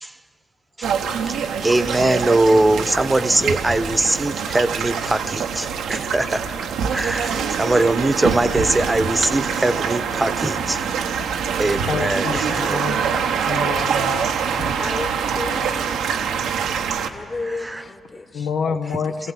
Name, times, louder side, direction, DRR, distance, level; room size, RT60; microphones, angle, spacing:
sound 1, 0.8-17.1, right 7 dB, 75° right, 0.9 m, -24 dB
voice 1, 1.5-6.6 6.9-10.9 11.6-12.8 17.5-17.8, right 2 dB, 20° right, 12 dB, 1.0 m, -21 dB
voice 2, 11.9-14.3 14.6-14.7 18.3-19.3, left 6 dB, 75° left, 5 dB, 0.9 m, -28 dB
voice 3, 14.8-15.9 17.0-18.5 18.8-19.0, left 3 dB, 35° left, 7 dB, 1.7 m, -32 dB
23.5 x 15.5 x 7.6 m, 2.4 s
hypercardioid pair, 45°, 0 cm